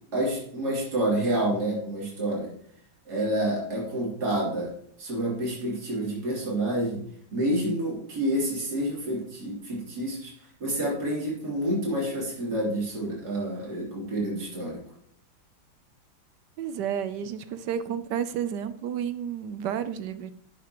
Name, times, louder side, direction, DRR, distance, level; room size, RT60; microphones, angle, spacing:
voice 1, 0.1-2.5 3.1-4.7 5.0-7.0 7.3-10.3 10.6-14.8, right 1 dB, 50° right, -4 dB, 3.9 m, -28 dB
voice 2, 16.6-20.3, right 8 dB, 70° right, 12 dB, 1.0 m, -31 dB
11.5 x 8.1 x 3.0 m, 0.67 s
omnidirectional pair, 2.3 m